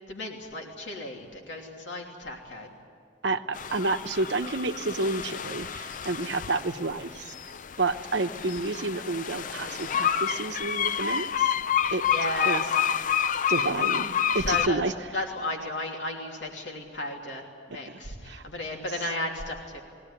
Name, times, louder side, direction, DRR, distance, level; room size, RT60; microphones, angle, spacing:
voice 1, 0.1-2.7 11.8-12.6 14.4-14.8 15.1-17.4 17.7-19.8, left 2 dB, 85° left, 1 dB, 2.9 m, -34 dB
voice 2, 3.2-7.3 7.8-11.5 11.9-12.0 12.4-12.7 13.5-15.1 17.8-18.0 18.2-18.4 18.9-19.1, right 3 dB, 75° right, 8 dB, 0.9 m, -30 dB
sound 1, 3.5-14.7, left 8 dB, 45° left, 0.5 m, -29 dB
21.5 x 17.5 x 9.9 m, 2.3 s
head